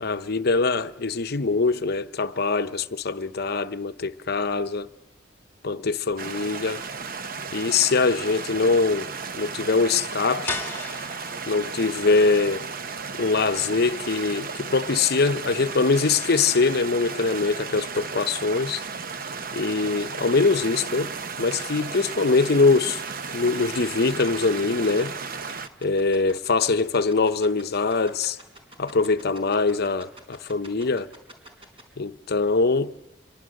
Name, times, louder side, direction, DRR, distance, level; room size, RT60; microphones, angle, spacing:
voice 1, 0.0-4.9 5.6-6.8 7.5-9.1 9.3-10.5 11.5-12.7 13.2-18.8 19.5-21.1 21.4-23.0 23.3-25.2 25.8-28.4 28.8-31.1 32.0-32.9, left 4 dB, 55° left, 0.8 m, -23 dB
sound 1, 6.2-25.7, right 5 dB, 50° right, 0.8 m, -34 dB
sound 2, 10.5-16.1, left 3 dB, 10° left, 2.5 m, -39 dB
sound 3, 21.6-31.8, right 1 dB, 30° right, 4.2 m, -45 dB
27.0 x 22.5 x 6.5 m
head